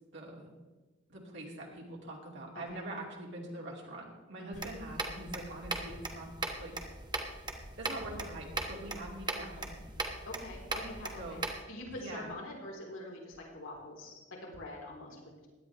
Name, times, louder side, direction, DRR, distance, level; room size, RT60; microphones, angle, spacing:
voice 1, 0.1-0.5 1.1-6.3 6.6-6.7 7.8-9.8 11.2-11.4 12.0-12.3, right 1 dB, 60° right, -2 dB, 2.5 m, -43 dB
sound 1, 4.5-11.6, right 2 dB, 20° right, 1.2 m, -39 dB
voice 2, 10.3-11.4 11.7-15.5, left 1 dB, 80° left, -2 dB, 3.7 m, -45 dB
16.5 x 11.5 x 3.4 m, 1.2 s
head